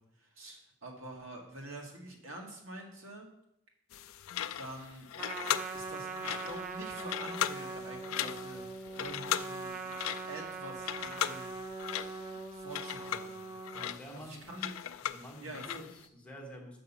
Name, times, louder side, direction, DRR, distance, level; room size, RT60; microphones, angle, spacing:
voice 1, 0.0-3.3 4.6-5.1 5.7-8.6 9.0-10.0 10.3-11.5 12.5-13.3 14.1-14.7 15.4-15.9, right 1 dB, 70° right, 0 dB, 1.8 m, -46 dB
sound 1, 3.9-16.0, left 11 dB, 80° left, 0.4 m, -38 dB
Trumpet, 5.1-13.9, right 4 dB, 40° right, 0.6 m, -42 dB
voice 2, 13.7-14.5 15.1-16.8, equal, 5° left, 0 dB, 1.3 m, -48 dB
6.1 x 5.7 x 7.1 m, 0.81 s
head